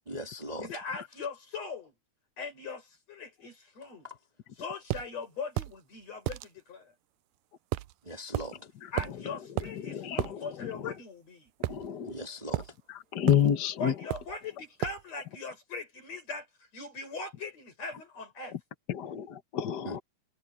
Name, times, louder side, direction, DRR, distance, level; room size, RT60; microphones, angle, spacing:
voice 1, 0.1-0.7 4.0-4.2 8.0-8.7 12.0-12.7 19.8-20.0, equal, 15° right, 2.4 m, -40 dB
voice 2, 0.6-1.9 2.4-4.1 4.6-6.9 8.9-11.5 13.8-16.5 16.7-18.5, left 4 dB, 50° left, 7.4 m, -40 dB
sound 1, 4.9-5.1 5.6-5.8 6.3-6.5 7.7-7.9 8.3-8.5 9.0-9.2 9.6-9.7 10.2-10.3 11.6-12.2 12.5-12.7 13.3-13.5 14.1-14.4 14.8-15.0, right 18 dB, 85° right, 2.2 m, -33 dB
voice 3, 9.8-10.4 10.8-10.9 11.7-12.1 13.1-13.9 18.9-20.0, left 9 dB, 70° left, 1.0 m, -28 dB
omnidirectional pair, 3.7 m